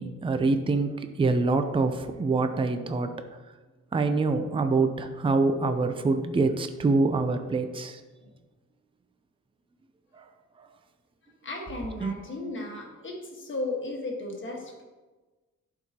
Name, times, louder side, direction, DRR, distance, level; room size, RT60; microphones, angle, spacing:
voice 1, 0.0-3.1 3.9-8.0 12.0-12.1, right 3 dB, 20° right, 8 dB, 0.4 m, -25 dB
voice 2, 11.4-14.8, left 2 dB, 40° left, 0 dB, 1.4 m, -35 dB
11.0 x 4.7 x 2.8 m, 1.2 s
wide cardioid pair, 165°, 30 cm